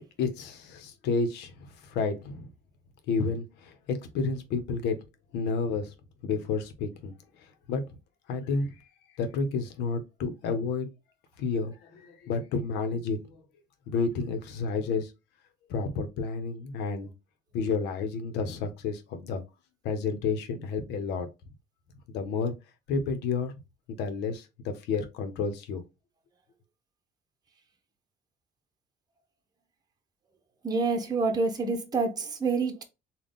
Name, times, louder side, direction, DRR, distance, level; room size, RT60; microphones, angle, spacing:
voice 1, 0.2-2.5 3.1-5.0 5.3-5.9 6.2-7.1 7.7-7.8 8.3-8.8 9.2-10.9 11.4-13.4 13.9-15.1 15.7-17.1 17.5-19.4 19.8-21.3 22.1-22.5 22.9-23.5 23.9-25.8, left 4 dB, 85° left, 0.9 m, -30 dB
voice 2, 30.6-32.8, right 4 dB, 25° right, 0.9 m, -27 dB
3.8 x 2.4 x 3.6 m
cardioid pair, 110°, 17 cm